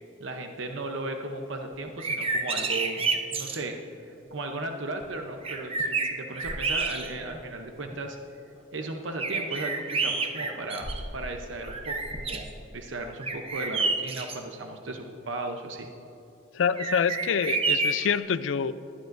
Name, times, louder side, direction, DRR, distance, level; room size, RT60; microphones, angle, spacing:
voice 1, 0.2-3.8 4.3-8.2 8.7-15.9, right 2 dB, 85° right, 4 dB, 0.8 m, -36 dB
sound 1, 1.9-3.6 5.0-5.1 5.4-7.4 7.9-8.0 9.2-11.3 11.6-12.5 13.2-14.4 16.8-18.2, right 3 dB, 30° right, 0.8 m, -29 dB
voice 2, 16.5-18.7, left 7 dB, 90° left, 14 dB, 0.4 m, -26 dB
20.0 x 11.5 x 2.6 m, 2.9 s
head